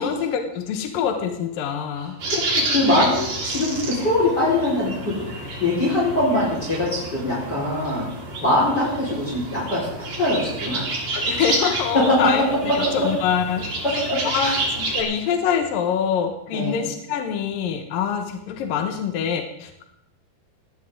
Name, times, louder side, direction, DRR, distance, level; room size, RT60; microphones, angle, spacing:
voice 1, 0.0-2.2 2.9-3.2 11.1-19.8, left 7 dB, 70° left, 5 dB, 2.7 m, -25 dB
sound 1, 2.2-15.0, right 2 dB, 65° right, 5.9 m, -29 dB
voice 2, 2.3-8.1 8.4-10.9 14.1-14.2 14.4-14.6 16.5-16.8, left 1 dB, 25° left, -5 dB, 4.9 m, -23 dB
18.5 x 17.5 x 3.8 m, 0.79 s
omnidirectional pair, 4.4 m